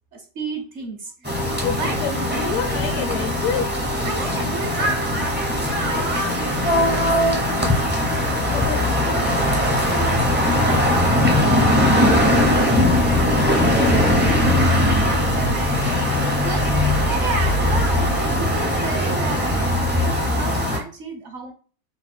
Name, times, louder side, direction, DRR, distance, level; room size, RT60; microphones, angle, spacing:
voice 1, 0.1-1.4 1.7-2.0 4.0-6.8 7.6-7.7 9.0-9.3 9.9-21.5, right 4 dB, 60° right, 0.9 m, -33 dB
sound 1, 1.2-20.8, left 1 dB, 15° right, 0.4 m, -20 dB
voice 2, 1.6-3.8 8.4-9.4, left 7 dB, 75° left, 1.1 m, -28 dB
4.0 x 2.3 x 4.2 m
omnidirectional pair, 1.7 m